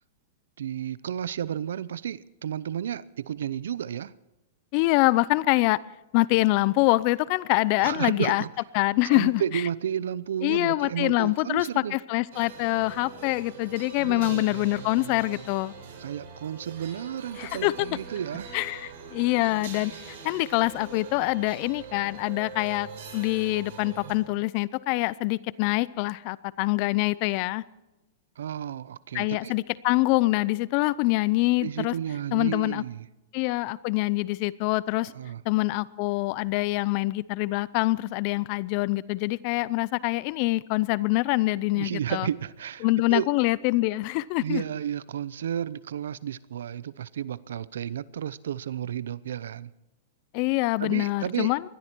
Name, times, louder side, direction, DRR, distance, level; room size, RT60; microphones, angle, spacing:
voice 1, 0.6-4.1 7.8-8.5 9.0-12.0 14.0-14.7 16.0-18.5 28.4-29.5 31.6-33.1 35.1-35.4 41.7-43.3 44.4-49.7 50.8-51.5, right 9 dB, 80° right, 0.7 m, -32 dB
voice 2, 4.7-5.8 6.1-8.4 8.7-9.4 10.4-15.7 17.4-17.9 18.5-22.9 23.1-27.6 29.1-31.9 32.3-32.8 33.3-35.1 35.5-42.3 42.8-44.6 50.3-51.6, left 20 dB, 45° left, 0.6 m, -25 dB
sound 1, 12.3-24.1, right 6 dB, 65° right, 6.3 m, -43 dB
20.5 x 13.0 x 4.6 m
hypercardioid pair, 135°, 0 cm